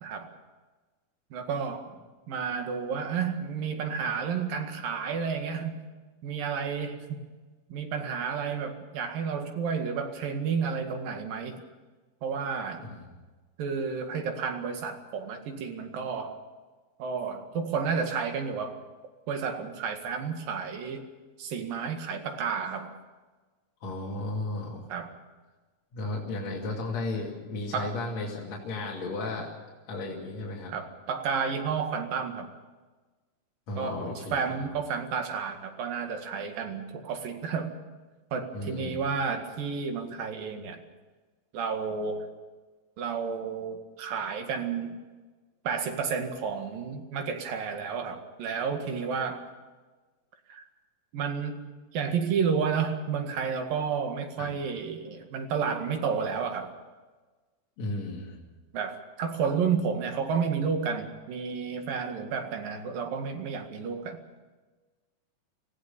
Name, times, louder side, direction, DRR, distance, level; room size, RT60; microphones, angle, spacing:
voice 1, 1.3-1.9 2.3-5.9 6.2-7.3 7.7-11.6 12.2-12.9 13.6-16.4 17.0-18.8 19.3-21.0 21.4-22.9 24.9-25.1 27.7-27.9 30.7-32.5 33.8-37.7 38.3-40.8 41.5-42.3 43.0-45.0 45.7-49.4 50.5-50.6 51.1-51.6 51.9-56.7 58.7-64.2, right 6 dB, 75° right, 5 dB, 3.7 m, -31 dB
voice 2, 12.8-13.1 23.8-24.9 25.9-29.5 29.9-30.7 33.7-34.6 38.5-39.0 54.4-54.5 57.8-58.4, left 2 dB, 50° left, -4 dB, 3.7 m, -34 dB
26.5 x 16.0 x 6.9 m, 1.3 s
omnidirectional pair, 4.1 m